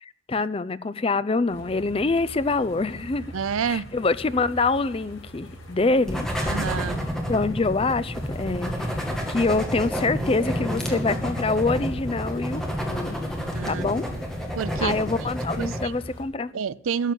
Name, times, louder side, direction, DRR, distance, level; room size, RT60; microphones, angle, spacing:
voice 1, 0.0-3.3 3.6-6.3 7.3-13.2 13.7-14.1 14.8-16.5, left 3 dB, 25° left, 0.4 m, -25 dB
sound 1, 1.5-16.2, equal, 60° left, 7.1 m, -43 dB
voice 2, 3.3-3.8 6.4-7.0 13.5-13.9 14.6-15.0 15.6-15.9 16.5-17.1, right 6 dB, 80° right, 0.5 m, -28 dB
sound 2, 6.1-15.8, equal, ahead, 2.1 m, -29 dB
13.0 x 7.4 x 9.1 m
head